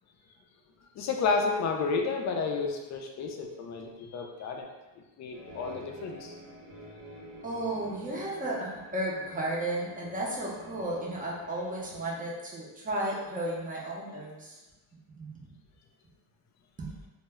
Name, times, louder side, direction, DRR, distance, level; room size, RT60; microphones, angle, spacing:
voice 1, 0.9-4.7 5.2-6.3, left 4 dB, 40° left, 2 dB, 0.4 m, -31 dB
sound 1, 5.3-12.0, equal, 80° right, 0.9 m, -49 dB
voice 2, 7.4-14.6 15.2-15.3 16.8-16.9, right 1 dB, 20° right, -5 dB, 0.6 m, -34 dB
2.1 x 2.1 x 3.5 m, 1.1 s
cardioid pair, 115°, 46 cm